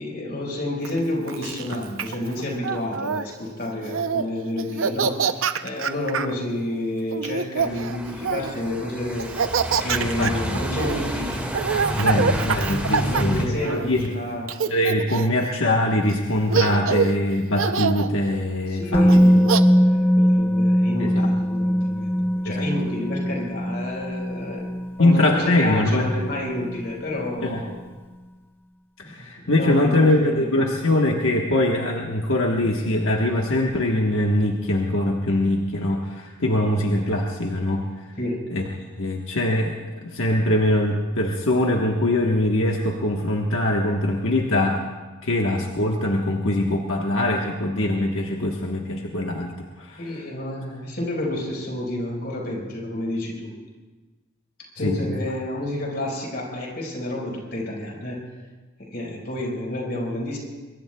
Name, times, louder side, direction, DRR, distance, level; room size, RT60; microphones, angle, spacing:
voice 1, 0.0-9.3 9.7-11.5 12.1-14.5 18.7-24.7 25.0-27.8 29.0-30.5 38.2-38.5 50.0-53.5 54.7-58.2 58.8-60.4, left 1 dB, 50° left, -2 dB, 4.8 m, -30 dB
Laughter, 0.8-3.2 3.8-4.3 4.6-6.3 7.1-8.6 9.2-14.1 14.5-15.4 16.1-16.2 16.5-17.2 17.6-18.1 19.1-19.6, right 5 dB, 85° right, 0.6 m, -25 dB
sound 1, 7.6-13.5, right 1 dB, 10° right, 1.8 m, -30 dB
voice 2, 10.0-10.6 12.0-14.1 14.7-19.1 21.0-21.3 22.4-22.7 25.0-26.1 27.4-27.6 29.0-38.1 38.5-38.6 39.0-44.8 45.2-50.2 54.8-55.1, left 1 dB, 85° left, 0 dB, 1.3 m, -22 dB
Musical instrument, 18.9-26.8 27.1-27.3, equal, 10° left, 0.8 m, -21 dB
24.5 x 22.5 x 2.3 m, 1.3 s
head